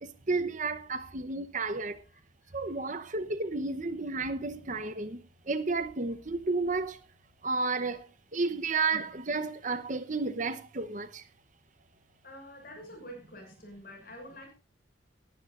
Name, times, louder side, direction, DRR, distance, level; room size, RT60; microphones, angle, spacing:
voice 1, 0.3-2.0 2.5-5.2 5.5-7.0 7.4-8.0 8.3-11.1, right 3 dB, 40° right, 0.9 m, -31 dB
voice 2, 2.1-2.5 8.5-8.6 12.2-14.5, equal, 50° left, 6.4 m, -48 dB
19.0 x 11.5 x 2.5 m
head